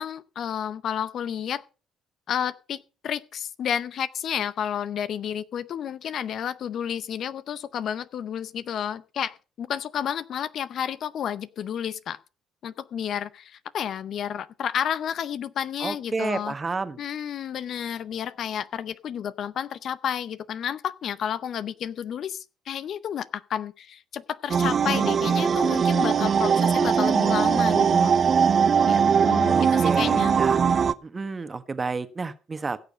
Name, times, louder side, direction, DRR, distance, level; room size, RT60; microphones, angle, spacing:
voice 1, 0.0-1.6 2.3-12.2 12.6-16.5 17.0-28.1 28.9-30.4, left 9 dB, 60° left, 16 dB, 0.6 m, -31 dB
voice 2, 15.8-17.0 29.5-30.6 31.0-32.8, right 4 dB, 30° right, 11 dB, 1.3 m, -31 dB
sound 1, 24.5-30.9, right 6 dB, 50° right, 0.6 m, -21 dB
16.5 x 6.7 x 5.3 m, 0.35 s
hypercardioid pair, 55°, 0 cm